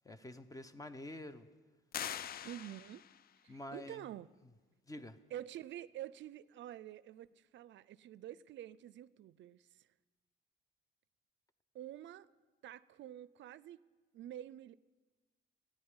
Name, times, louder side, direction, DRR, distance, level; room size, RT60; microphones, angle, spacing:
voice 1, 0.0-1.5 3.5-4.0 4.9-5.2, left 1 dB, 15° left, 0.9 m, -47 dB
sound 1, 1.9-3.3, left 10 dB, 50° left, 0.4 m, -43 dB
voice 2, 2.4-3.1 3.4-4.3 5.3-9.9 11.7-12.3 12.6-13.9 14.1-14.7, right 12 dB, 70° right, 0.4 m, -48 dB
13.5 x 10.0 x 9.6 m
cardioid pair, 90°, 20 cm